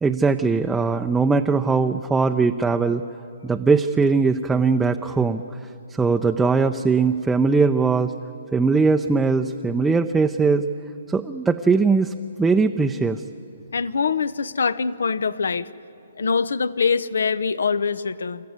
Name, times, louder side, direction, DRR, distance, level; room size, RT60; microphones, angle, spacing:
voice 1, 0.0-3.0 3.4-5.4 5.9-8.1 8.5-10.6 11.1-12.1 12.4-13.2, right 4 dB, 10° right, 5 dB, 0.6 m, -20 dB
voice 2, 13.7-15.7 16.2-18.5, left 5 dB, 75° left, 17 dB, 0.7 m, -23 dB
28.5 x 14.0 x 9.6 m, 2.6 s
hypercardioid pair, 140°, 0 cm